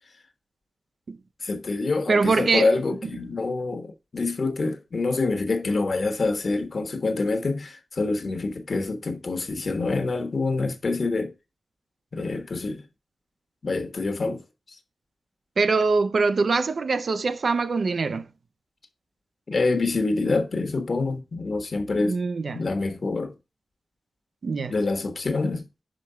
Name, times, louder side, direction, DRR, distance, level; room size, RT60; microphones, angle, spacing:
voice 1, 1.4-11.3 12.1-12.9 13.6-14.4 19.5-22.2 22.5-23.3 24.7-25.7, left 3 dB, 50° left, 1.3 m, -26 dB
voice 2, 2.1-2.7 15.6-18.3 22.0-22.6 24.4-24.7, right 4 dB, 65° right, 0.6 m, -23 dB
5.9 x 5.1 x 5.6 m
wide cardioid pair, 125°, 0 cm